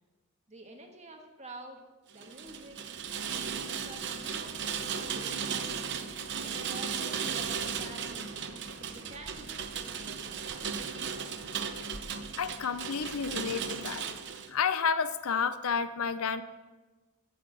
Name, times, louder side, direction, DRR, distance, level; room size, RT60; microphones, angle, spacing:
voice 1, 0.5-1.8 2.1-2.8 3.3-4.6 4.9-5.9 6.4-8.3 8.8-10.8, right 2 dB, 30° right, 3 dB, 1.5 m, -49 dB
Rain, 2.1-14.5, right 6 dB, 50° right, 0.8 m, -36 dB
voice 2, 12.4-14.1 14.5-16.4, left 6 dB, 75° left, 13 dB, 0.6 m, -30 dB
8.6 x 8.0 x 8.5 m, 1.3 s
head